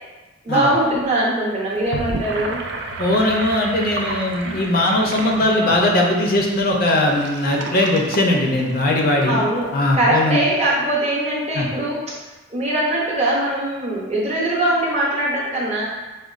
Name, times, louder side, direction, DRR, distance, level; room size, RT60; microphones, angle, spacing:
voice 1, 0.4-2.6 9.2-12.0 12.5-15.8, right 1 dB, 35° right, -5 dB, 0.7 m, -21 dB
Gurgling / Sink (filling or washing), 1.7-9.2, right 2 dB, 55° right, 0.3 m, -32 dB
voice 2, 3.0-9.4 9.7-10.4 11.5-11.6, left 1 dB, 45° left, 0 dB, 0.4 m, -19 dB
5.0 x 2.2 x 2.4 m, 1.2 s
head